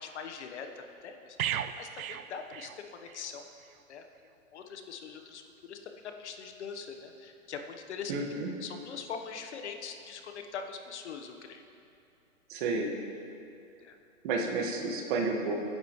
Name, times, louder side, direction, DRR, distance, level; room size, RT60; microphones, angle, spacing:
voice 1, 0.0-3.4 3.9-4.0 4.5-5.4 5.7-5.8 6.2-8.1 8.6-11.6 13.8-14.0, left 6 dB, 55° left, 5 dB, 1.2 m, -42 dB
sound 1, 1.4-3.3 3.6-3.8, right 10 dB, 80° right, 0.7 m, -36 dB
voice 2, 8.1-8.5 12.5-12.9 14.2-15.7, right 3 dB, 35° right, 1 dB, 1.7 m, -31 dB
23.5 x 10.0 x 3.2 m, 2.6 s
hypercardioid pair, 150°, 42 cm